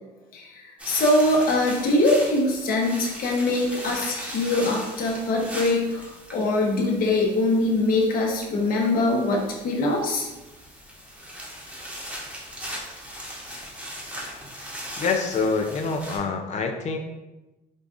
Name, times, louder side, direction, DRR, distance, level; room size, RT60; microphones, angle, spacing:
voice 1, 0.3-10.3, left 2 dB, 60° left, -1 dB, 1.0 m, -23 dB
sound 1, 0.8-16.2, equal, 5° right, 1.0 m, -39 dB
voice 2, 15.0-17.0, left 4 dB, 45° left, 4 dB, 0.4 m, -26 dB
5.0 x 2.3 x 2.5 m, 1.0 s
cardioid pair, 110°, 17 cm